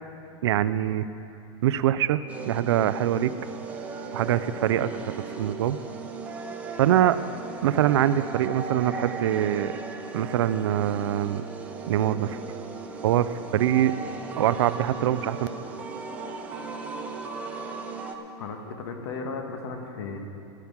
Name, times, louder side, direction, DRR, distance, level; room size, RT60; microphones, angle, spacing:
voice 1, 0.4-1.1 1.6-3.3 4.1-5.0 5.4-5.8 6.8-7.2 7.6-9.7 10.1-11.4 11.9-12.4 13.0-13.9 14.4-15.5, right 12 dB, 70° right, 14 dB, 0.5 m, -23 dB
sound 1, 2.3-18.1, right 4 dB, 10° right, 0.5 m, -37 dB
voice 2, 18.4-20.2, left 4 dB, 75° left, 4 dB, 1.6 m, -35 dB
13.0 x 6.0 x 8.7 m, 2.8 s
supercardioid pair, 180°, 14 cm